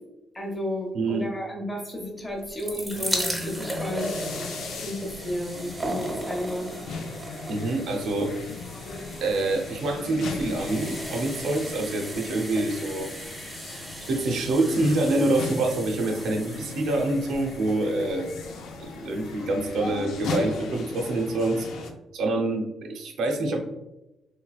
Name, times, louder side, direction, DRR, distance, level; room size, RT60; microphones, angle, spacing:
voice 1, 0.3-4.1 4.8-6.7, equal, 15° left, 0 dB, 0.9 m, -32 dB
sound 1, 2.3-19.4 20.1-20.2 20.4-20.5, right 1 dB, 15° right, 0.9 m, -37 dB
sound 2, 2.9-21.9, left 3 dB, 85° left, 0.4 m, -38 dB
voice 2, 7.5-8.3 9.2-13.1 14.1-18.3 18.8-21.7 22.1-23.6, right 2 dB, 85° right, 2 dB, 0.6 m, -26 dB
3.3 x 3.1 x 2.3 m, 0.98 s
cardioid pair, 115°, 0 cm